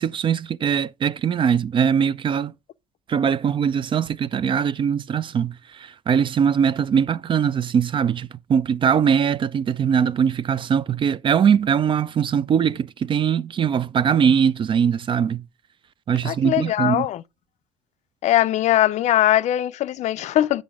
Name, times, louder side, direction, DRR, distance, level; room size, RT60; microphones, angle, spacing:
voice 1, 0.0-2.5 3.1-15.4 16.1-17.1, right 7 dB, 35° right, 0.4 m, -21 dB
voice 2, 16.2-17.2 18.2-20.6, left 13 dB, 50° left, 0.4 m, -20 dB
8.4 x 5.1 x 3.6 m
hypercardioid pair, 65°, 15 cm